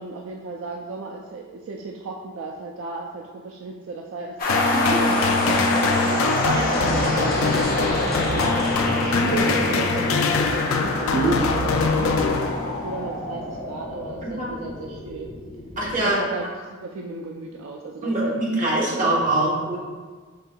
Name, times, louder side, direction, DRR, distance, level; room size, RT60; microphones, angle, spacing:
voice 1, 0.0-15.3 16.0-18.3, right 3 dB, 70° right, 0 dB, 0.3 m, -35 dB
sound 1, 4.4-16.0, left 2 dB, 45° left, 0.7 m, -27 dB
sound 2, 4.5-13.0, left 3 dB, 80° left, 0.4 m, -24 dB
voice 2, 6.4-6.8 11.1-11.3 14.2-14.6 15.8-16.2 18.0-19.8, right 2 dB, 40° right, -4 dB, 0.9 m, -23 dB
sound 3, 6.7-12.5, equal, ahead, 1.1 m, -32 dB
5.5 x 3.5 x 2.2 m, 1.5 s
head